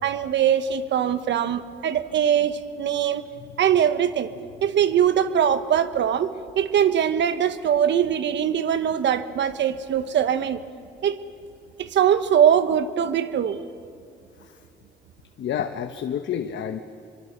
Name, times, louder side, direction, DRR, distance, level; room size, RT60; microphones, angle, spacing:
voice 1, 0.0-3.2 3.6-4.3 4.6-10.6 11.0-11.2 11.8-13.6, right 9 dB, 65° right, 11 dB, 1.2 m, -22 dB
voice 2, 15.4-16.8, left 9 dB, 65° left, 5 dB, 1.2 m, -28 dB
25.0 x 23.5 x 6.8 m, 2.4 s
cardioid pair, 90°, 20 cm